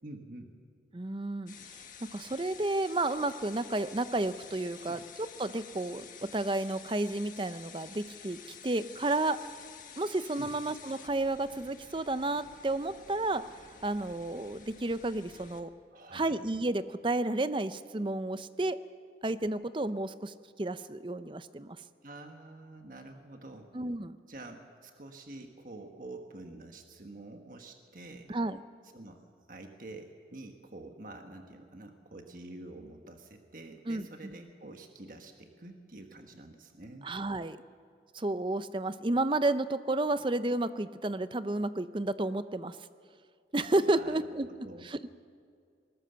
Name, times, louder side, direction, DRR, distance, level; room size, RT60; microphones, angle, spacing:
voice 1, 0.0-0.5 4.7-5.0 10.4-10.5 15.9-16.4 22.0-23.7 24.3-28.3 28.9-37.1 43.9-44.3 44.6-44.8, right 2 dB, 50° right, 4 dB, 1.4 m, -47 dB
voice 2, 0.9-1.5 2.0-8.4 8.6-9.4 10.0-13.4 13.8-15.7 16.1-18.8 19.2-21.8 23.7-24.2 28.3-28.6 33.9-34.1 37.0-37.6 38.1-42.8 43.5-44.5 44.8-45.0, right 2 dB, 30° right, 13 dB, 0.6 m, -31 dB
sound 1, 1.5-15.6, left 7 dB, 50° left, 1.5 m, -51 dB
21.0 x 19.0 x 6.9 m, 2.2 s
head